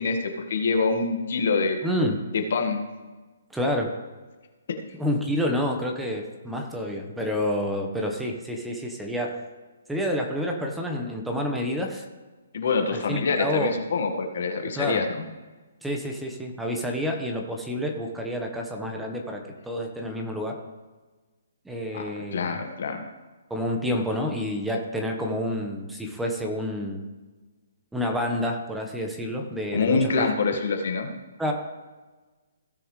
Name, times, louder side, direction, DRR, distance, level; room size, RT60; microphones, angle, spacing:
voice 1, 0.0-1.8 2.3-2.8 12.5-15.2 21.9-23.0 29.7-31.1, left 4 dB, 65° left, 4 dB, 1.7 m, -25 dB
voice 2, 1.8-2.2 3.5-3.9 5.0-9.4 9.9-12.0 12.9-13.7 14.7-15.0 15.8-20.6 21.6-22.5 23.5-27.0 27.9-30.3 31.4-31.5, equal, 5° right, 1 dB, 1.2 m, -28 dB
16.0 x 6.9 x 3.3 m, 1.2 s
hypercardioid pair, 145°, 0 cm